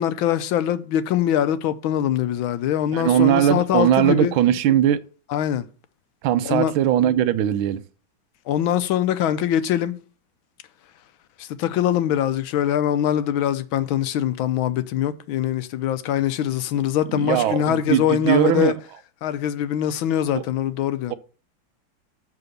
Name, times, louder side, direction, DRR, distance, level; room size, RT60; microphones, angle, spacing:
voice 1, 0.0-4.3 5.3-5.7 6.4-6.7 8.5-9.9 11.4-18.7 19.2-21.1, left 10 dB, 90° left, 1.5 m, -23 dB
voice 2, 2.9-5.0 6.2-7.8 17.1-18.8 20.3-20.4, right 11 dB, 80° right, 1.5 m, -20 dB
6.9 x 5.9 x 6.6 m
omnidirectional pair, 2.2 m